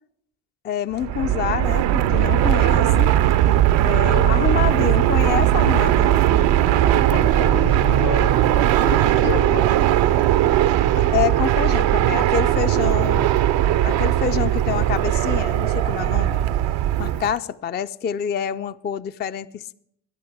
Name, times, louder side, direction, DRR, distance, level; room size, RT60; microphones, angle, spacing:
voice 1, 0.6-3.2 3.8-6.2 11.0-13.3 13.8-16.4 17.0-19.7, left 9 dB, 25° left, 0.4 m, -27 dB
Fixed-wing aircraft airplane, 0.9-17.3, right 12 dB, 70° right, 0.6 m, -18 dB
voice 2, 3.7-4.7 6.8-10.0, left 4 dB, 80° left, 2.0 m, -30 dB
12.5 x 11.0 x 4.7 m
hypercardioid pair, 50°, 46 cm